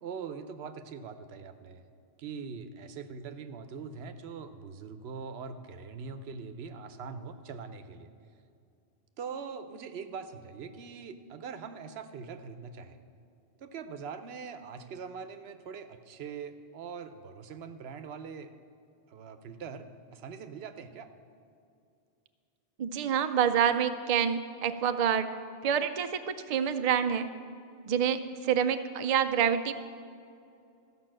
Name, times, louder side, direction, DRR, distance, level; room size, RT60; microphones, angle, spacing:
voice 1, 0.0-1.8 2.2-8.1 9.2-13.0 13.6-18.5 19.1-21.1, right 5 dB, 80° right, 10 dB, 0.9 m, -42 dB
voice 2, 22.8-25.3 25.6-27.2 27.9-29.7, right 8 dB, 50° right, 9 dB, 0.5 m, -27 dB
13.5 x 5.5 x 7.5 m, 2.5 s
omnidirectional pair, 1.1 m